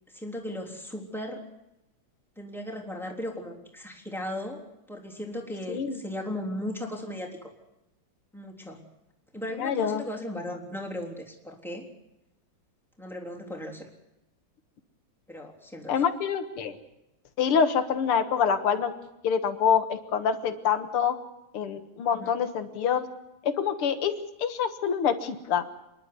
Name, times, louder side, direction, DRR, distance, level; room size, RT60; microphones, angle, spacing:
voice 1, 0.1-1.4 2.4-4.6 4.9-7.5 8.3-8.8 9.3-11.9 13.0-13.9 15.3-15.9 22.1-22.3, left 1 dB, ahead, 2 dB, 3.4 m, -36 dB
voice 2, 5.7-6.0 9.6-10.0 15.9-16.8 17.4-18.9 19.2-21.2 21.5-23.1 23.4-25.6, left 7 dB, 85° left, 9 dB, 2.4 m, -26 dB
27.0 x 11.5 x 9.6 m, 0.89 s
omnidirectional pair, 2.4 m